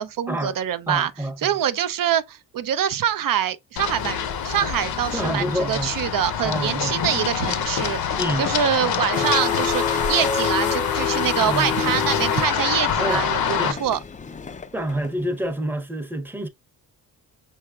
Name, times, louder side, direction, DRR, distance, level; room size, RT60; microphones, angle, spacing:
voice 1, 0.0-1.1 1.4-14.0, right 9 dB, 60° right, 0.5 m, -25 dB
voice 2, 0.9-1.5 5.1-5.9 6.4-7.1 8.2-8.5 11.5-11.7 13.0-13.3 13.6-13.8 14.7-16.5, equal, 5° right, 0.7 m, -27 dB
Run, 3.8-13.7, left 8 dB, 65° left, 0.7 m, -25 dB
sound 1, 9.1-15.5, left 5 dB, 20° left, 0.4 m, -29 dB
5.7 x 3.4 x 2.3 m
cardioid pair, 70°, 39 cm